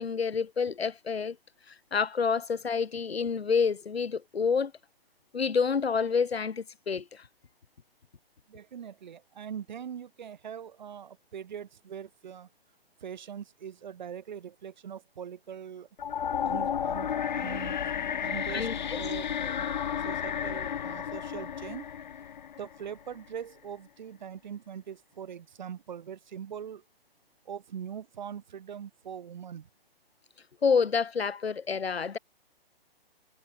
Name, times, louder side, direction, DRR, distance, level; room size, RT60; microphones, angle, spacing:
voice 1, 0.0-1.4 1.7-4.7 5.3-7.3 18.5-19.0 30.6-32.2, left 5 dB, 80° left, 3.2 m, -28 dB
voice 2, 8.5-12.5 13.0-15.9 16.4-19.7 20.0-21.8 22.6-26.8 27.4-29.7, right 8 dB, 50° right, 2.8 m, -42 dB
sound 1, 16.0-23.1, left 8 dB, 50° left, 0.8 m, -32 dB
hypercardioid pair, 165°, 31 cm